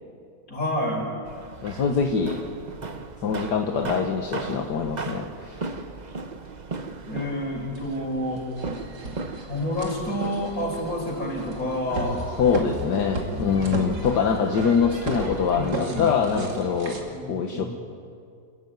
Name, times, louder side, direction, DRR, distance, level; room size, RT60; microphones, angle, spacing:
voice 1, 0.5-1.1 7.1-8.4 9.5-12.2 13.3-14.1 15.5-16.1 16.9-17.7, left 1 dB, 50° left, -1 dB, 5.6 m, -29 dB
sound 1, 1.2-15.7, right 4 dB, 35° right, 0.7 m, -38 dB
voice 2, 1.6-2.4 3.2-5.6 12.4-17.0 17.3-17.6, left 6 dB, 65° left, 4 dB, 1.8 m, -24 dB
sound 2, 7.7-7.8 8.4-17.0, right 2 dB, 60° right, 3.2 m, -34 dB
27.5 x 14.5 x 9.4 m, 2.4 s
omnidirectional pair, 2.0 m